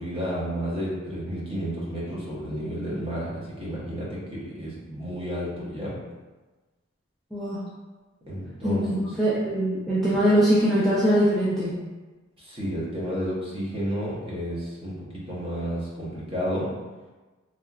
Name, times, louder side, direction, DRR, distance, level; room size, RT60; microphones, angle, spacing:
voice 1, 0.0-6.0 8.3-9.1 12.4-16.7, equal, 25° right, -7 dB, 0.7 m, -31 dB
voice 2, 8.6-11.7, equal, ahead, -10 dB, 0.4 m, -22 dB
2.8 x 2.3 x 2.3 m, 1.2 s
head